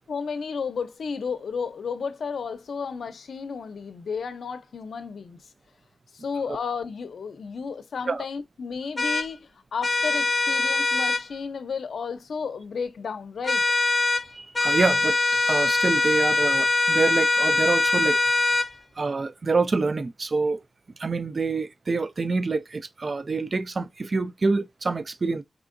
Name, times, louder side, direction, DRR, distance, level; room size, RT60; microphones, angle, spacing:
voice 1, 0.1-5.5 6.1-13.6, left 5 dB, 85° left, 0.5 m, -33 dB
sound 1, 9.0-9.3 9.8-11.2 13.4-14.2 14.5-18.7, left 2 dB, 30° left, 0.4 m, -22 dB
voice 2, 14.3-15.2 15.5-18.2 19.0-20.6 21.0-25.4, right 3 dB, 40° right, 0.3 m, -26 dB
4.7 x 3.5 x 2.5 m
wide cardioid pair, 145°, 0 cm